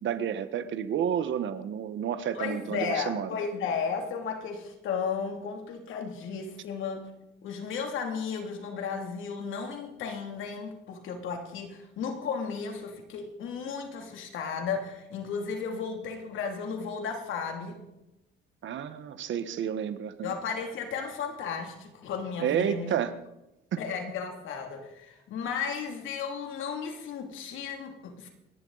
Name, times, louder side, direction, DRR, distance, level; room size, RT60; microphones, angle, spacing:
voice 1, 0.0-3.3 18.6-20.3 22.4-23.2 23.7-23.8, right 9 dB, 70° right, 11 dB, 1.4 m, -30 dB
voice 2, 2.3-7.1 7.4-17.8 20.2-22.9 23.8-28.3, left 6 dB, 80° left, 3 dB, 2.9 m, -34 dB
28.5 x 11.0 x 4.1 m, 0.92 s
cardioid pair, 90°, 20 cm